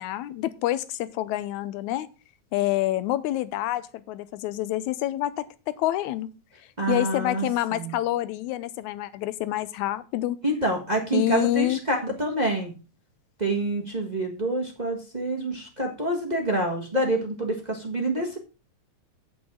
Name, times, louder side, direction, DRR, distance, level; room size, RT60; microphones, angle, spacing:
voice 1, 0.0-2.1 2.5-6.3 6.9-10.4 11.1-11.8, left 14 dB, 90° left, 2.0 m, -27 dB
voice 2, 6.8-7.4 7.7-8.0 10.4-12.7 13.4-18.4, right 1 dB, 25° right, 1.0 m, -27 dB
8.8 x 8.6 x 3.7 m
omnidirectional pair, 3.3 m